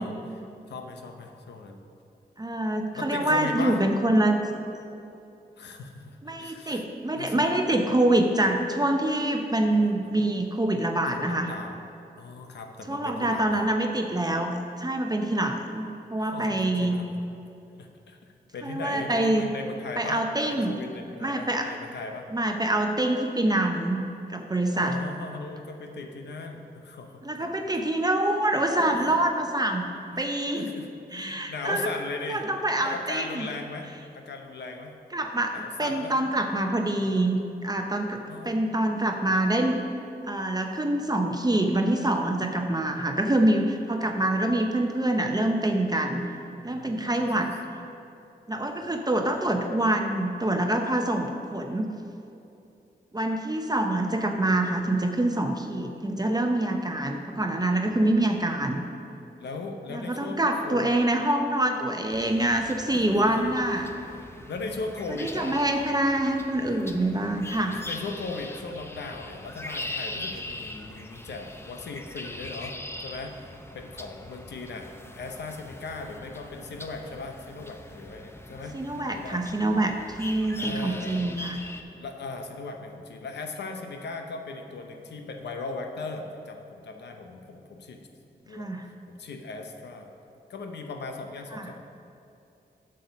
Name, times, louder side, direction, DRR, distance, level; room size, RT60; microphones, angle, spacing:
voice 1, 0.0-1.8 2.9-3.8 5.6-6.9 7.1-7.6 9.8-9.9 11.1-11.8 12.2-13.7 16.2-17.2 17.8-18.2 18.5-20.2 20.5-22.3 24.8-27.7 28.6-29.2 29.9-32.4 32.8-33.9 34.1-34.9 35.5-36.1 38.3-39.1 46.6-47.3 48.6-49.0 57.7-58.5 59.4-60.9 62.3-62.6 62.9-63.5 64.1-65.6 66.7-67.2 67.8-72.8 73.0-78.8 79.1-79.5 80.6-81.4 82.0-88.1 88.5-90.1 90.5-91.8, left 3 dB, 90° left, 4 dB, 0.8 m, -38 dB
voice 2, 2.4-4.4 6.2-11.5 12.9-17.0 18.6-19.5 20.0-20.7 21.2-21.7 22.3-24.0 24.3-25.0 27.2-29.9 30.1-30.7 31.1-31.9 32.3-33.5 35.1-39.8 40.3-46.2 46.6-47.5 48.5-51.9 53.1-58.8 59.9-63.9 65.2-67.8 78.7-81.6 88.5-88.9 91.5-91.7, right 1 dB, 25° right, 4 dB, 0.7 m, -25 dB
sound 1, 62.1-81.8, left 1 dB, 15° left, 0.7 m, -41 dB
7.8 x 6.6 x 5.4 m, 2.8 s
cardioid pair, 60°, 17 cm